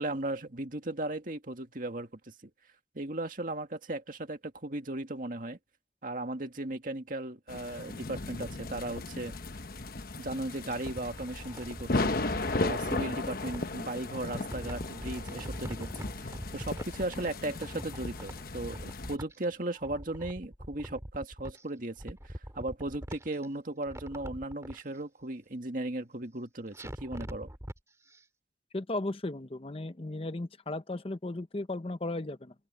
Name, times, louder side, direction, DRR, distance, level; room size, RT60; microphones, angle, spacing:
voice 1, 0.0-2.5 2.9-5.6 6.0-9.3 10.2-12.1 12.6-15.9 16.2-27.5, right 2 dB, 50° right, 2.1 m, -36 dB
sound 1, 7.5-19.2, left 2 dB, 55° left, 1.1 m, -36 dB
sound 2, 10.5-13.6 14.1-17.3 17.6-19.4 19.7-21.6 22.0-23.5 23.8-24.8 26.7-27.8 28.1-28.2, equal, 15° right, 2.5 m, -43 dB
voice 2, 28.7-32.5, left 2 dB, 35° left, 0.8 m, -35 dB
open air
head